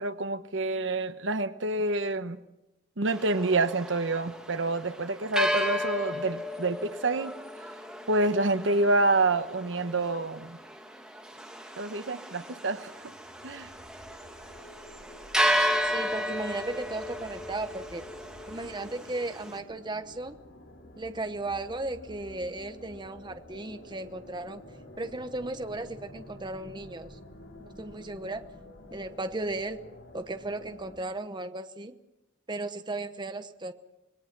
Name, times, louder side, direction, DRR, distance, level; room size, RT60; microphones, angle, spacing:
voice 1, 0.0-2.4 3.0-7.3 8.1-10.6 11.8-13.1 13.4-13.7, right 2 dB, 80° right, 10 dB, 1.1 m, -27 dB
sound 1, 3.1-19.6, equal, 5° right, 2.3 m, -34 dB
sound 2, 13.0-31.0, left 1 dB, 70° left, 3.6 m, -50 dB
voice 2, 15.8-18.0 18.5-20.4 21.0-24.6 25.0-27.2 27.8-28.4 28.9-29.8 30.1-32.0 32.5-33.7, right 2 dB, 25° right, 8 dB, 1.0 m, -35 dB
26.5 x 20.0 x 6.1 m, 0.95 s
head